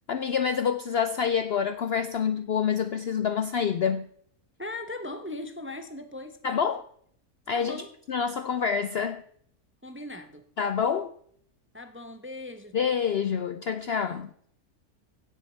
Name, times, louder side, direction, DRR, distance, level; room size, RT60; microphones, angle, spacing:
voice 1, 0.1-4.1 6.4-6.8 7.5-7.8 8.1-9.2 10.6-11.1 12.7-14.3, left 7 dB, 65° left, 10 dB, 0.6 m, -27 dB
voice 2, 4.6-6.7 7.5-7.9 9.8-10.5 11.7-12.8 13.9-14.2, left 2 dB, 10° right, 8 dB, 0.6 m, -39 dB
16.5 x 7.0 x 4.4 m, 0.63 s
omnidirectional pair, 1.6 m